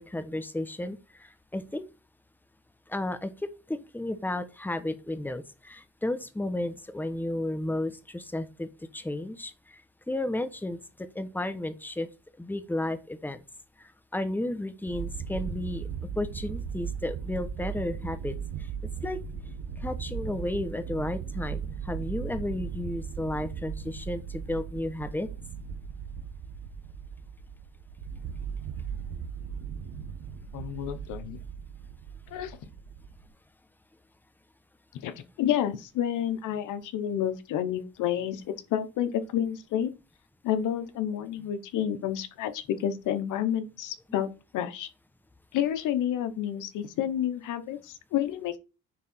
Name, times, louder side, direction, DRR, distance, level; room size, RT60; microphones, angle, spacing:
voice 1, 0.0-1.8 2.9-9.8 10.1-12.1 12.4-13.4 14.1-15.9 16.2-18.3 19.0-19.2 19.8-25.3, left 1 dB, 5° left, 1.1 m, -33 dB
sound 1, 14.9-33.3, right 7 dB, 85° right, 1.4 m, -37 dB
voice 2, 30.5-31.4 32.3-32.6 35.0-38.4 38.7-39.9 40.4-44.9 45.5-48.6, left 10 dB, 90° left, 1.1 m, -30 dB
9.9 x 3.7 x 4.4 m
cardioid pair, 90°, 30 cm